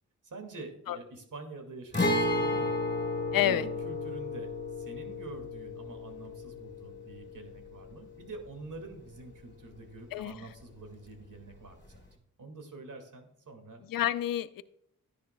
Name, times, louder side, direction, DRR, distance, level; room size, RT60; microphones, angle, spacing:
voice 1, 0.2-2.8 3.3-12.0 12.4-13.9, right 3 dB, 60° right, 5 dB, 2.1 m, -46 dB
Guitar, 1.9-9.6 9.8-9.9 11.9-12.1, left 2 dB, 30° left, 2.5 m, -33 dB
voice 2, 3.3-3.7 10.1-10.3 13.9-14.6, left 12 dB, 70° left, 15 dB, 0.5 m, -28 dB
12.5 x 10.5 x 2.2 m, 0.71 s
supercardioid pair, 45°, 36 cm